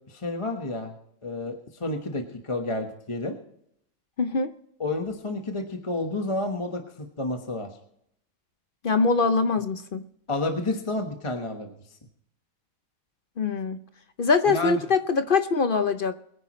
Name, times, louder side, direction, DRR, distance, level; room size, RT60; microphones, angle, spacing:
voice 1, 0.1-0.9 1.2-3.4 4.8-6.8 7.2-7.8 10.3-11.7 14.5-14.8, left 2 dB, 25° left, 3 dB, 1.2 m, -30 dB
voice 2, 4.2-4.5 8.8-10.0 13.4-13.8 14.2-16.1, left 4 dB, 50° left, 10 dB, 0.7 m, -23 dB
23.5 x 10.5 x 3.1 m, 0.72 s
omnidirectional pair, 1.5 m